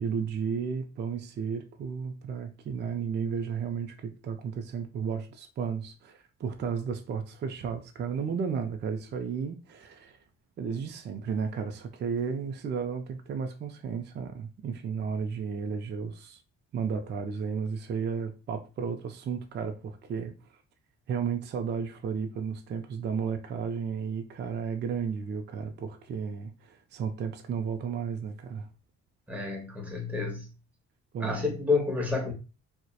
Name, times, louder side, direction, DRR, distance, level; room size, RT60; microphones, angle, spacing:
voice 1, 0.0-10.2 10.6-16.4 16.7-20.4 21.1-28.7 31.1-31.5, right 6 dB, 35° right, 0.4 m, -33 dB
voice 2, 29.3-30.5 31.2-32.3, left 4 dB, 5° right, 0.7 m, -29 dB
2.7 x 2.1 x 2.2 m
cardioid pair, 90°, 30 cm